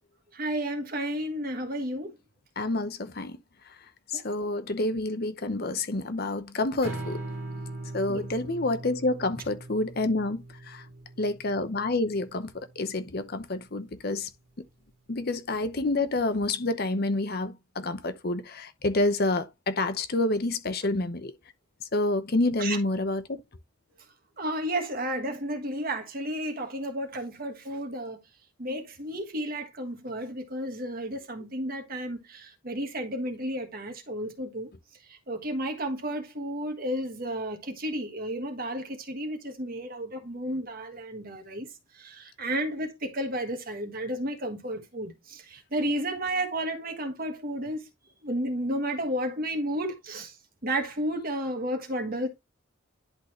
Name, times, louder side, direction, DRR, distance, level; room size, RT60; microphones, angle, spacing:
voice 1, 0.3-2.1 4.1-4.5 8.1-8.2 22.6-22.8 24.4-28.2 28.6-34.7 35.1-41.7 41.9-47.9 48.2-50.3 50.6-52.3, right 1 dB, 40° right, 1.5 m, -32 dB
voice 2, 2.6-3.4 4.1-7.2 7.9-10.8 11.2-14.3 15.1-21.3 21.9-23.4, left 2 dB, 45° left, 0.7 m, -28 dB
Strum, 6.8-13.1, right 2 dB, 60° right, 2.3 m, -41 dB
11.0 x 4.0 x 3.1 m
head